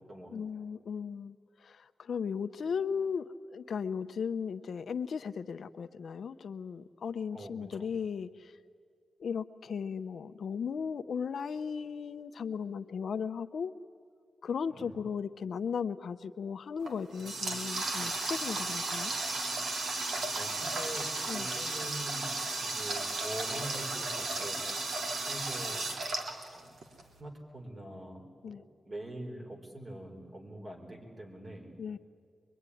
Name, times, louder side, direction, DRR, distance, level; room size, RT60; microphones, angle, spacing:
voice 1, 0.3-1.4 1.6-8.5 9.2-13.7 14.4-19.1 21.3-21.5 28.4-28.6 31.8-32.0, left 6 dB, 70° left, 11 dB, 0.7 m, -36 dB
voice 2, 7.3-7.9 14.7-15.0 20.3-22.3 22.6-24.6 25.2-25.9 26.5-26.7 27.2-31.7, right 1 dB, 35° right, 2 dB, 4.3 m, -44 dB
Water tap faucet, 16.8-27.0, right 3 dB, 80° right, 2.9 m, -34 dB
23.5 x 23.0 x 9.9 m, 2.1 s
wide cardioid pair, 130°, 0 cm